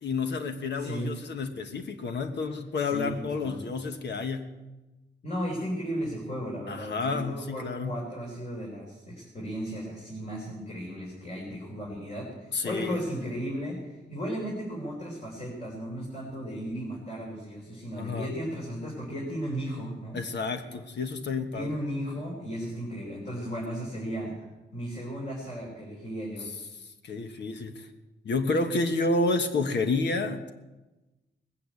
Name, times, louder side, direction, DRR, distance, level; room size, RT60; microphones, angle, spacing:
voice 1, 0.0-4.5 6.7-8.0 12.5-13.0 18.0-18.3 20.1-21.7 26.4-26.5 26.8-27.9 28.2-30.4, left 3 dB, 75° left, 6 dB, 1.3 m, -30 dB
voice 2, 0.8-1.1 2.8-3.1 3.4-3.6 5.2-20.2 21.5-24.4 24.7-26.5, equal, 40° left, -3 dB, 4.3 m, -35 dB
20.0 x 8.6 x 8.4 m, 1.1 s
wide cardioid pair, 155°, 18 cm